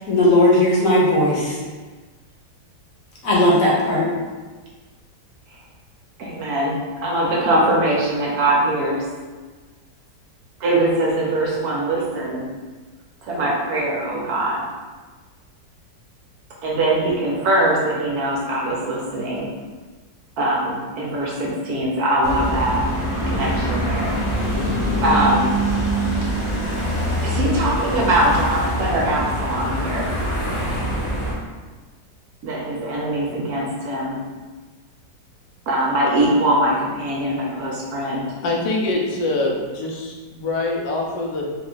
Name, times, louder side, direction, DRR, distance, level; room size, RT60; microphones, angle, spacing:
voice 1, 0.1-1.6 3.2-4.1, left 1 dB, 60° left, -5 dB, 1.1 m, -16 dB
voice 2, 6.2-9.0 10.6-12.5 13.2-14.6 16.6-19.5 20.4-22.9 23.3-24.1 25.0-25.5 27.2-30.1 32.4-34.2 35.7-38.3, right 1 dB, 65° right, -4 dB, 1.0 m, -22 dB
sound 1, 22.2-31.3, right 1 dB, 40° left, 0.4 m, -24 dB
voice 3, 38.4-41.6, left 2 dB, 90° left, -1 dB, 1.3 m, -24 dB
3.4 x 2.1 x 3.7 m, 1.3 s
omnidirectional pair, 1.9 m